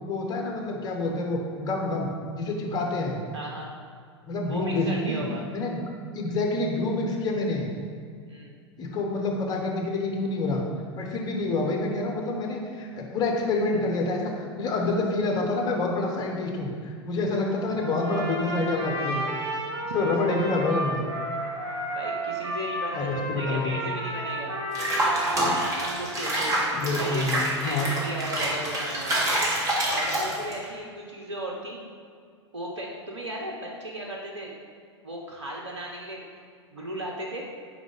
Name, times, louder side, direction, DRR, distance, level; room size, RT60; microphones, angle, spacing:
voice 1, 0.0-3.2 4.3-5.2 5.5-5.8 6.1-7.7 8.8-10.6 11.0-19.3 19.9-21.1 22.9-23.8 26.7-27.9, left 2 dB, 25° left, 0 dB, 1.1 m, -27 dB
voice 2, 3.3-3.7 4.5-5.4 8.3-8.5 20.0-20.1 21.9-24.9 25.8-26.5 26.8-29.3 29.9-31.8 32.5-34.5 35.0-36.3 36.7-37.4, right 1 dB, 75° right, -2 dB, 0.8 m, -36 dB
Trumpet, 17.8-26.1, right 1 dB, 55° right, 1.2 m, -32 dB
Water / Bathtub (filling or washing), 24.7-30.7, right 1 dB, 20° right, 1.4 m, -27 dB
5.2 x 4.0 x 5.0 m, 2.1 s
figure-of-eight pair, 95°, 15 cm